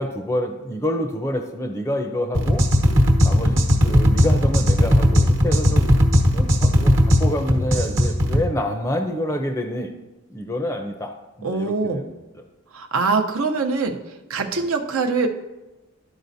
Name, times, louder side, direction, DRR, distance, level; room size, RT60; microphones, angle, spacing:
voice 1, 0.0-2.7 3.2-5.9 6.3-9.9 10.3-12.4, left 1 dB, 15° left, 5 dB, 0.5 m, -27 dB
sound 1, 2.3-8.4, equal, 60° right, 1.1 m, -17 dB
voice 2, 11.4-12.0 12.7-14.0 14.3-15.3, right 4 dB, 75° right, 5 dB, 0.8 m, -23 dB
13.0 x 5.0 x 2.6 m, 1.0 s
head